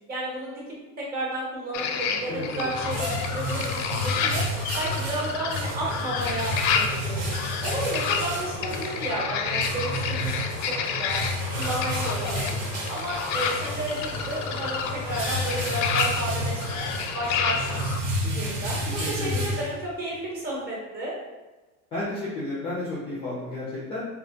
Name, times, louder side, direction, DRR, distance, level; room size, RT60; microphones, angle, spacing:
voice 1, 0.1-0.6 1.0-4.4 4.7-7.3 7.6-11.2 11.6-12.6 12.9-17.8 18.3-18.8 19.1-21.1, right 1 dB, 25° right, -5 dB, 0.8 m, -32 dB
sound 1, 1.7-18.0, left 6 dB, 90° left, 0.5 m, -30 dB
voice 2, 2.2-2.7 18.2-18.3 18.9-19.4 21.9-24.1, left 2 dB, 15° left, -7 dB, 0.3 m, -32 dB
sound 2, 2.3-20.1, equal, 70° right, 0.9 m, -31 dB
3.4 x 2.4 x 2.7 m, 1.2 s
cardioid pair, 175°, 37 cm